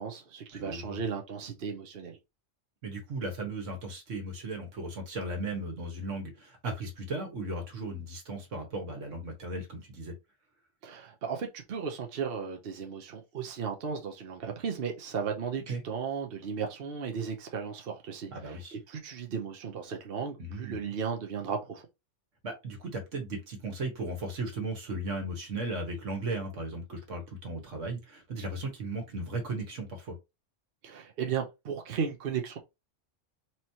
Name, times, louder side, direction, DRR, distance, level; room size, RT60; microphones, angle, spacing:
voice 1, 0.0-2.2 10.8-21.8 30.8-32.6, right 6 dB, 55° right, 0.9 m, -35 dB
voice 2, 0.5-1.0 2.8-10.1 15.7-15.8 18.3-18.7 20.4-20.8 22.4-30.2, right 2 dB, 80° right, 1.6 m, -36 dB
4.3 x 3.1 x 2.7 m
omnidirectional pair, 1.3 m